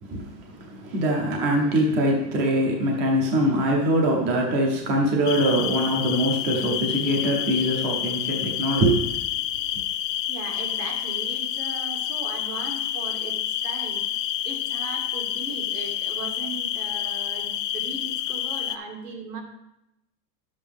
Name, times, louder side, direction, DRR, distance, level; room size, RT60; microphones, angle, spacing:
voice 1, 0.0-9.2, right 1 dB, 20° right, 0 dB, 0.9 m, -23 dB
sound 1, 5.2-18.8, left 11 dB, 75° left, 0.8 m, -29 dB
voice 2, 10.3-14.1 14.4-19.4, right 4 dB, 65° right, 2 dB, 2.1 m, -38 dB
10.0 x 7.5 x 3.6 m, 0.86 s
supercardioid pair, 160°, 49 cm